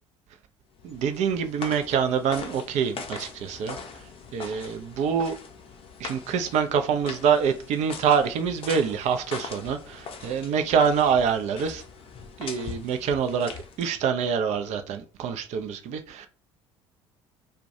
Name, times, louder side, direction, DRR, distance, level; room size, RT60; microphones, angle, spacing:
sound 1, 0.8-14.1, left 5 dB, 35° left, 0.5 m, -41 dB
voice 1, 0.8-3.8 4.3-5.4 6.0-11.8 12.4-13.5 13.8-16.3, right 7 dB, 50° right, 0.4 m, -25 dB
2.2 x 2.1 x 2.7 m
figure-of-eight pair, 55°, 16 cm